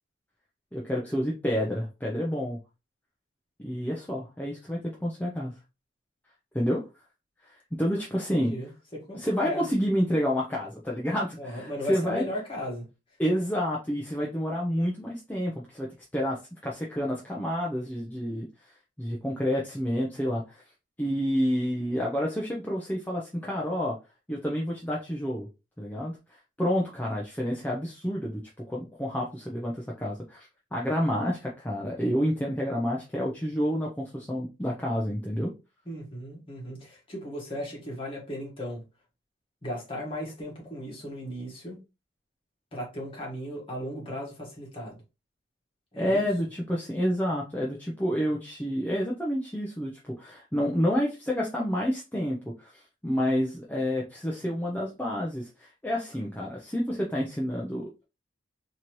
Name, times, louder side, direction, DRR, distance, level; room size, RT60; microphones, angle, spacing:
voice 1, 0.7-2.6 3.6-5.6 6.5-6.8 7.4-8.5 9.1-12.2 13.2-18.5 19.0-20.6 21.0-24.0 24.3-25.5 25.8-28.4 28.7-35.5 46.0-58.0, equal, 10° left, 0.6 m, -29 dB
voice 2, 8.3-8.7 9.1-9.7 11.4-12.9 35.9-38.8 39.6-41.8 42.7-45.0 45.9-46.3, left 1 dB, 25° left, 1.6 m, -36 dB
4.0 x 2.9 x 3.0 m
head